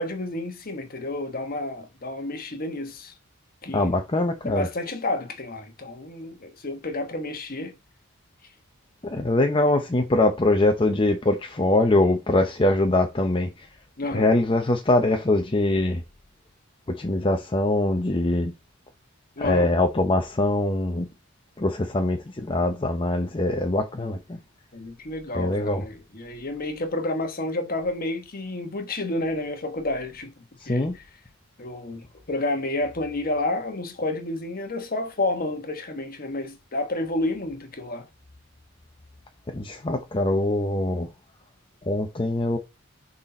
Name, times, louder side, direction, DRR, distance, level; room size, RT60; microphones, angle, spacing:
voice 1, 0.0-3.1 3.6-3.9 4.4-7.7 14.0-14.3 19.4-19.7 24.7-30.3 30.7-30.8 31.6-38.1, left 2 dB, 45° left, 1.3 m, -30 dB
voice 2, 3.7-4.7 9.0-13.7 14.1-16.0 16.9-18.5 19.4-21.1 21.6-24.4 25.3-25.9 30.6-31.0 39.5-41.1 41.8-42.6, left 2 dB, 25° left, 0.7 m, -23 dB
6.3 x 4.1 x 4.2 m
head